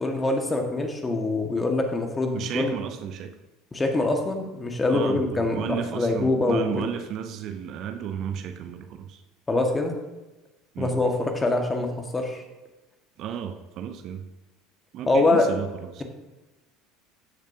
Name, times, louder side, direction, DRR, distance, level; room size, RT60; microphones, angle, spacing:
voice 1, 0.0-2.8 3.7-6.9 9.5-10.0 10.8-12.4 15.1-15.5, left 2 dB, 20° left, 4 dB, 1.7 m, -24 dB
voice 2, 2.3-3.4 4.9-9.2 10.7-11.0 13.2-14.3 14.9-16.0, right 8 dB, 50° right, 8 dB, 0.7 m, -33 dB
14.5 x 6.7 x 2.8 m, 1.1 s
figure-of-eight pair, 70°, 0 cm